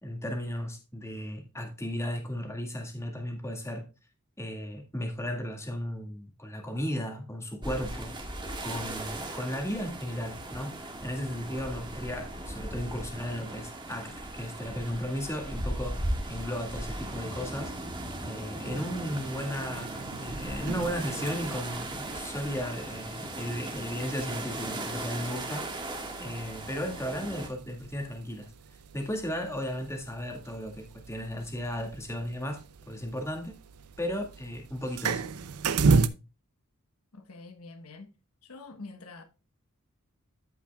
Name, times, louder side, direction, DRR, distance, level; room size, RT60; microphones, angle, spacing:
voice 1, 0.0-3.8 4.4-8.1 8.6-16.0 16.3-17.7 18.2-25.7 26.2-28.5 28.9-33.5 34.0-35.2, equal, 15° left, 2.0 m, -35 dB
sound 1, 7.6-27.5, right 1 dB, 20° right, 1.7 m, -37 dB
sound 2, 18.6-36.1, right 4 dB, 85° right, 0.7 m, -35 dB
voice 2, 37.1-38.2 38.4-39.2, left 3 dB, 75° left, 1.2 m, -46 dB
14.0 x 5.8 x 2.3 m
head